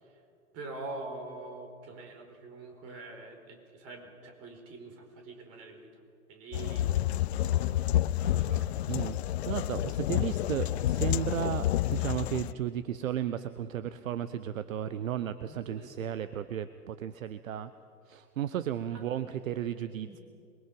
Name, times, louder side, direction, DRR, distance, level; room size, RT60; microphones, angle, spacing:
voice 1, 0.5-5.9 6.3-7.8 8.2-8.7 15.4-15.9 18.5-19.0 20.0-20.2, right 3 dB, 35° right, 4 dB, 4.8 m, -45 dB
sound 1, 6.5-12.5, left 13 dB, 45° left, 0.5 m, -29 dB
voice 2, 8.9-17.7 18.1-20.2, right 10 dB, 65° right, 12 dB, 0.9 m, -34 dB
27.0 x 22.0 x 5.3 m, 2.4 s
figure-of-eight pair, 105°, 44 cm